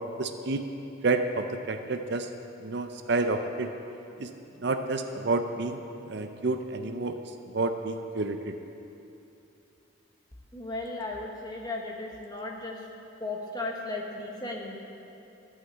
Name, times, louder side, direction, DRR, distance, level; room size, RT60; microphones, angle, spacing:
voice 1, 0.2-0.6 1.0-2.3 2.6-3.7 4.2-4.3 4.6-5.8 6.1-7.2 7.5-8.5, right 3 dB, 55° right, 7 dB, 0.5 m, -29 dB
voice 2, 10.5-12.8 13.2-14.8, left 2 dB, 20° left, -1 dB, 1.2 m, -35 dB
13.0 x 5.8 x 8.0 m, 2.8 s
head